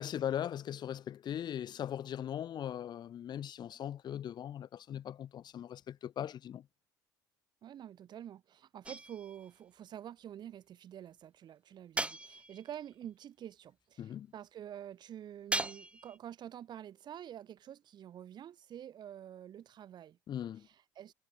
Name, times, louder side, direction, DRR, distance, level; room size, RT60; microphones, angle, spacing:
voice 1, 0.0-6.6 14.0-14.3 20.3-20.7, left 10 dB, 45° left, 6.0 m, -39 dB
voice 2, 7.6-20.2 20.6-21.1, right 10 dB, 45° right, 6.9 m, -48 dB
sound 1, 8.8-9.5 12.0-12.8 15.5-16.2, right 2 dB, 10° right, 5.5 m, -38 dB
figure-of-eight pair, 60°, 10 cm